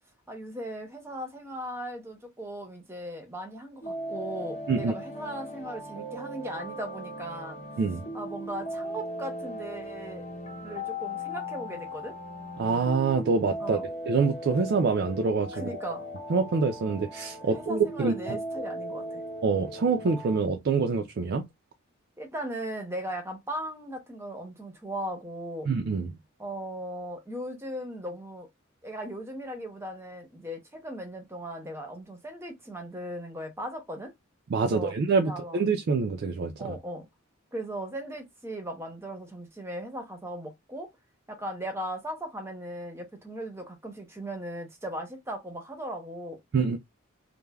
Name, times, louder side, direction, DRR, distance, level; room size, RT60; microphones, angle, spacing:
voice 1, 0.3-7.6 8.1-10.3 10.6-12.2 13.6-13.8 15.5-16.1 17.4-19.2 22.2-25.7 26.4-28.5 28.8-34.1 34.6-34.9 35.2-35.6 36.6-37.1 37.5-40.9 41.3-46.4, right 1 dB, 15° right, 0.7 m, -38 dB
sound 1, 3.8-20.4, equal, 35° left, 0.8 m, -38 dB
voice 2, 12.6-13.8 14.1-15.7 16.3-18.4 19.4-21.4 25.7-26.1 34.5-36.7 46.5-46.8, right 4 dB, 55° right, 0.3 m, -26 dB
3.1 x 2.1 x 2.3 m
head